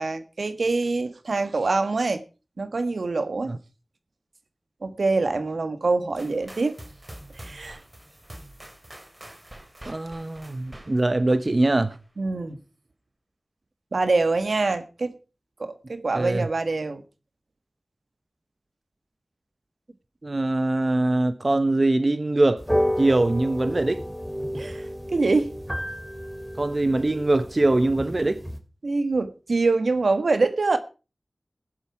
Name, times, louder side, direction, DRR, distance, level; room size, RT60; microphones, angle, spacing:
voice 1, 0.0-2.2 2.6-3.6 4.8-6.7 7.3-7.8 12.2-12.6 13.9-15.1 15.6-17.0 24.5-25.5 28.8-30.8, right 3 dB, 80° right, 1.6 m, -25 dB
sound 1, 6.2-12.0, right 1 dB, 25° right, 2.9 m, -46 dB
voice 2, 9.9-12.0 16.1-16.5 20.2-22.7 23.0-24.0 26.6-28.4, right 2 dB, 45° right, 1.0 m, -22 dB
sound 2, 22.6-28.6, equal, 5° right, 2.9 m, -30 dB
15.0 x 11.0 x 4.8 m
wide cardioid pair, 60°, 0 cm